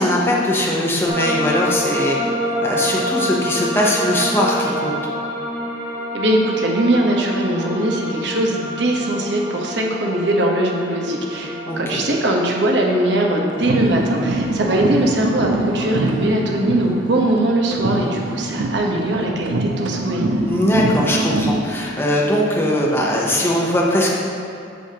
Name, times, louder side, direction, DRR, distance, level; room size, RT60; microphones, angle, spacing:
voice 1, 0.0-2.2 2.6-4.9 11.7-11.8 20.5-24.1, left 1 dB, 10° left, -4 dB, 0.8 m, -20 dB
sound 1, 1.1-18.8, equal, 15° right, 1.8 m, -29 dB
voice 2, 6.1-20.3, right 1 dB, 65° right, -1 dB, 1.0 m, -20 dB
sound 2, 13.5-17.4 17.7-21.7, right 2 dB, 85° right, 0.5 m, -24 dB
8.0 x 7.8 x 2.9 m, 2.7 s
head